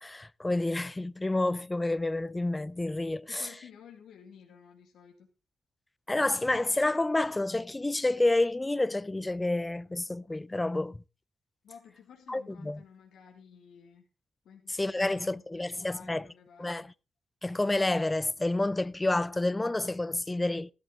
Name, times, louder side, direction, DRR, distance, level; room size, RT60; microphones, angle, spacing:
voice 1, 0.0-3.5 6.1-11.0 12.3-12.8 14.7-16.2 16.6-16.9 17.4-20.7, left 2 dB, 20° left, 0.5 m, -29 dB
voice 2, 3.3-5.3 11.6-14.1 14.4-16.9, left 7 dB, 80° left, 2.2 m, -53 dB
13.5 x 12.5 x 3.7 m
supercardioid pair, 60°, 0 cm